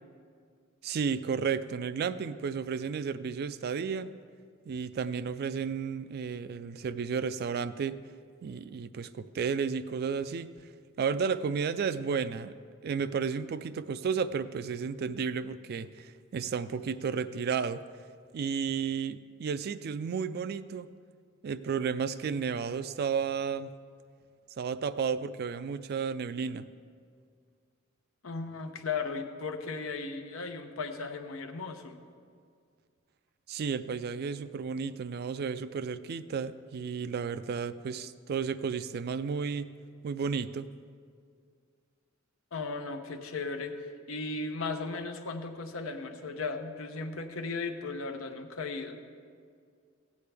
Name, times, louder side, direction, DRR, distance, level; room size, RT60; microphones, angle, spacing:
voice 1, 0.8-4.1 4.7-8.0 8.4-10.5 11.0-12.5 12.8-17.8 18.3-20.9 21.4-23.7 24.6-26.6 33.5-39.7 40.0-40.7, right 6 dB, 50° right, 13 dB, 0.3 m, -32 dB
voice 2, 28.2-32.0 42.5-49.0, left 4 dB, 90° left, 6 dB, 0.8 m, -36 dB
16.0 x 8.4 x 3.4 m, 2.1 s
head